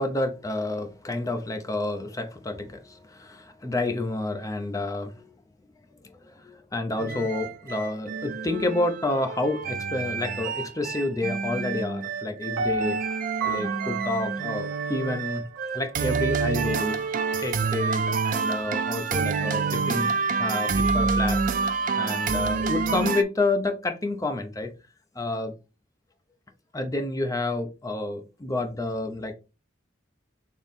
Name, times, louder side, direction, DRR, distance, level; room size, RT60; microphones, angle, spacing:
voice 1, 0.0-5.3 6.0-13.0 13.4-15.4 15.7-17.0 17.3-20.1 20.4-21.4 22.0-24.7 25.2-25.5 26.7-29.3, left 2 dB, 15° left, 0.5 m, -29 dB
sound 1, 7.0-23.2, right 4 dB, 40° right, 0.4 m, -28 dB
Piano, 12.6-15.6 16.1-16.2, right 4 dB, 85° right, 0.9 m, -32 dB
3.6 x 3.0 x 4.0 m
head